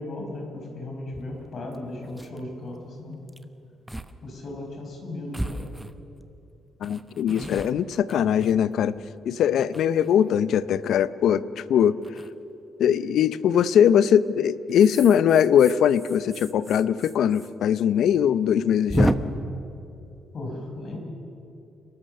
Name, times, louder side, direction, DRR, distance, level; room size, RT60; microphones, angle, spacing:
voice 1, 0.0-3.2 4.2-5.7 20.3-21.0, left 2 dB, 50° left, 2 dB, 5.4 m, -36 dB
sound 1, 1.1-1.2 1.7-1.8 2.0-2.4 3.3-3.4 3.9-4.1 4.4-4.5 5.3-6.3 6.8-9.0 9.6-10.4 12.0-12.3 13.6-13.9 14.7-17.5 17.7-17.8 18.1-18.2 18.9-19.1, right 1 dB, 5° right, 1.0 m, -31 dB
voice 2, 6.8-9.0 9.2-12.0 12.8-19.1, left 9 dB, 75° left, 16 dB, 0.6 m, -21 dB
29.5 x 13.0 x 6.8 m, 2.9 s
cardioid pair, 90°, 0 cm